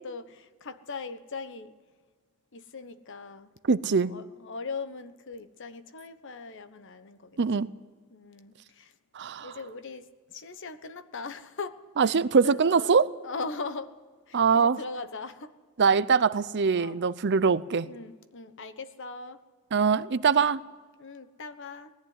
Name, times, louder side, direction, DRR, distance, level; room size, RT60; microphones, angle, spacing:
voice 1, 0.0-1.7 2.5-3.5 3.9-7.7 8.1-8.9 9.4-12.9 13.2-13.9 14.3-15.5 16.7-17.0 17.9-19.4 21.0-21.9, left 4 dB, 55° left, 1.1 m, -40 dB
voice 2, 3.7-4.1 7.4-7.7 9.1-9.5 12.0-13.1 14.3-14.8 15.8-17.9 19.7-20.6, right 5 dB, 50° right, 0.6 m, -23 dB
19.0 x 14.5 x 9.7 m
head